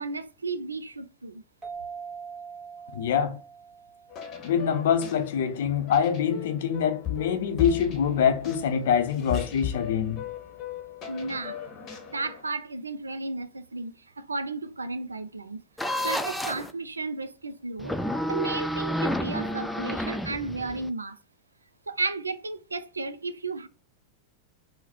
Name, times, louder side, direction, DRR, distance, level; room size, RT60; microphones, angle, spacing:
voice 1, 0.0-1.4 11.1-11.6 12.1-15.6 16.0-18.0 18.3-21.2 21.9-23.7, right 3 dB, 75° right, 0.3 m, -33 dB
sound 1, 1.6-4.9, right 6 dB, 25° right, 1.1 m, -42 dB
voice 2, 2.9-3.4 4.4-10.2, left 8 dB, 55° left, 0.6 m, -25 dB
sound 2, 4.1-12.4, left 9 dB, 30° left, 0.9 m, -37 dB
sound 3, 15.8-16.7 17.8-20.9, equal, ahead, 0.4 m, -30 dB
3.8 x 2.1 x 4.3 m
figure-of-eight pair, 90°, 0 cm